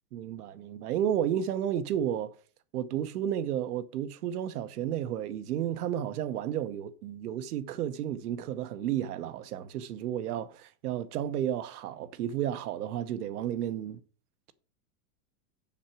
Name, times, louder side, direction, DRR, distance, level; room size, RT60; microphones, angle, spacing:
voice 1, 0.1-2.3 2.7-14.0, right 10 dB, 70° right, 1.0 m, -32 dB
7.4 x 5.7 x 5.9 m
supercardioid pair, 180°, 48 cm